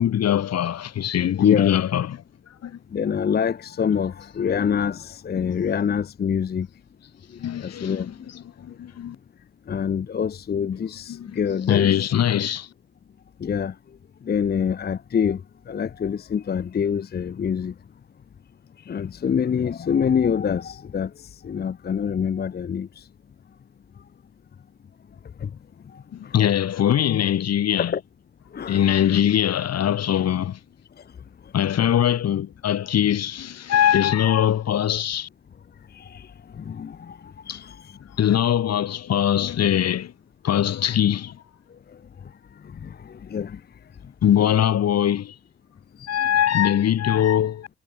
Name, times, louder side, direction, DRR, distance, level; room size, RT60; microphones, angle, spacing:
voice 1, 0.0-2.2 2.6-2.7 7.3-8.1 8.6-9.2 11.1-11.4 11.7-12.7 26.1-27.9 28.7-30.6 31.5-35.3 37.5-37.6 38.2-40.1 40.4-41.4 44.2-45.3 46.1-47.7, left 10 dB, 55° left, 1.3 m, -21 dB
voice 2, 1.4-1.7 2.9-6.7 7.6-8.3 9.7-12.1 13.4-13.7 14.2-15.4 15.7-17.7 18.9-23.0 25.4-25.5 25.9-26.3 27.9-28.0 28.5-28.9 35.9-36.3 36.5-38.0 42.6-43.6 46.0-46.2, left 7 dB, 30° left, 0.7 m, -26 dB
cardioid pair, 90°, 30 cm